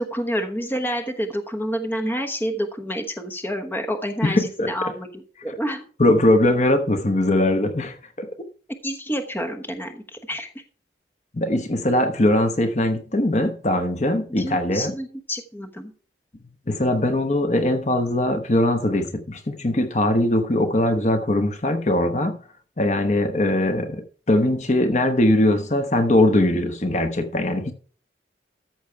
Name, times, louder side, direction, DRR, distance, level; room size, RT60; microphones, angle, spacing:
voice 1, 0.0-5.8 8.8-10.5 14.3-15.9, equal, 10° left, 1.1 m, -28 dB
voice 2, 4.2-4.7 6.0-8.3 11.3-14.9 16.7-22.4 22.8-24.0 24.3-27.7, left 1 dB, 40° left, 1.0 m, -21 dB
14.0 x 6.3 x 4.6 m
head